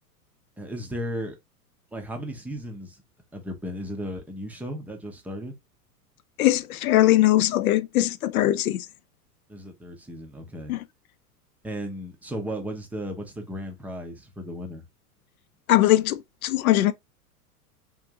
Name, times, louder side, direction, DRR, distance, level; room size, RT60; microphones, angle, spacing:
voice 1, 0.6-1.4 1.9-3.0 3.3-5.5 9.5-10.7 11.6-14.8, equal, 5° right, 0.6 m, -35 dB
voice 2, 6.4-8.9 10.7-10.8 15.7-16.9, left 15 dB, 65° left, 0.6 m, -21 dB
3.7 x 2.5 x 2.7 m
figure-of-eight pair, 95°, 47 cm